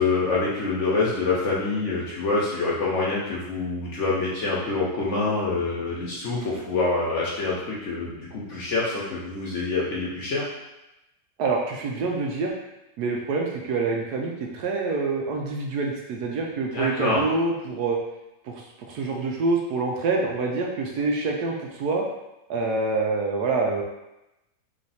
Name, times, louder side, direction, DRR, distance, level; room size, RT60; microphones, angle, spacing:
voice 1, 0.0-10.4 16.7-17.2, left 3 dB, 55° left, -5 dB, 0.9 m, -26 dB
voice 2, 11.4-12.5 13.0-18.0 18.4-22.0 22.5-23.8, right 3 dB, 70° right, 0 dB, 1.0 m, -26 dB
3.2 x 3.2 x 4.0 m, 0.95 s
omnidirectional pair, 1.9 m